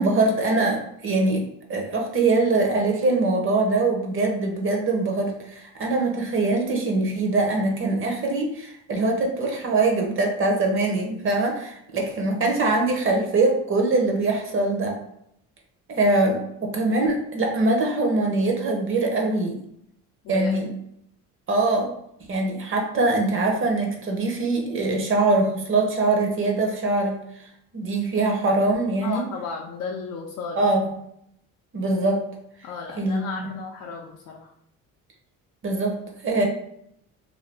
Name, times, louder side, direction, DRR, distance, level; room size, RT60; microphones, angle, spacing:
voice 1, 0.0-1.4 1.7-15.0 15.9-19.6 20.3-20.7 21.5-21.9 22.3-27.2 27.7-29.2 30.6-30.9 31.7-32.2 33.0-33.5 35.6-36.4, right 2 dB, 35° right, 2 dB, 0.7 m, -23 dB
voice 2, 20.2-20.6 29.0-30.6 32.6-34.5, left 5 dB, 60° left, -1 dB, 0.5 m, -34 dB
2.6 x 2.4 x 3.3 m, 0.75 s
cardioid pair, 110°, 34 cm